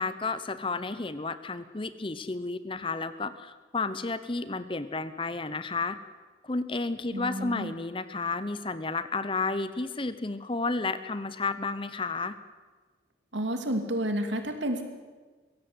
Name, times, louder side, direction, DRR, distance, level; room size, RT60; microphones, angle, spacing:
voice 1, 0.0-6.0 6.4-12.4, left 3 dB, 25° left, 13 dB, 0.8 m, -32 dB
voice 2, 7.1-7.7 13.3-14.8, equal, 75° right, 6 dB, 2.7 m, -30 dB
22.5 x 17.0 x 8.0 m, 1.3 s
head